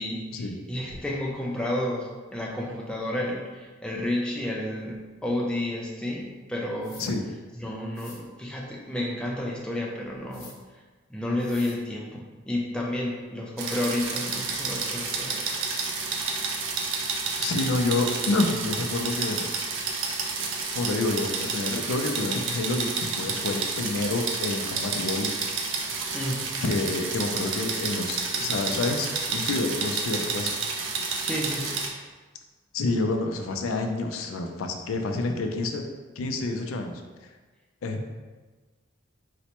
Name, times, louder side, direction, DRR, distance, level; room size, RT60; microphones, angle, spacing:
voice 1, 0.0-7.0 7.6-10.5 11.1-15.5 15.8-16.4 26.1-26.4 31.2-31.8, left 1 dB, 5° left, -3 dB, 0.4 m, -31 dB
sound 1, 6.8-7.1 7.9-8.2 10.3-10.5 11.4-11.8 13.2-13.3 13.7-13.9 14.6-14.7 15.0-15.2 17.5-17.8 19.1-19.3, left 4 dB, 65° left, 0.7 m, -47 dB
sound 2, 13.6-31.9, right 4 dB, 65° right, 0.4 m, -30 dB
voice 2, 17.4-19.4 20.7-25.3 26.6-30.5 32.7-35.9 36.2-37.0 37.8-38.1, left 2 dB, 85° left, 4 dB, 0.4 m, -28 dB
4.0 x 2.1 x 2.9 m, 1.3 s
head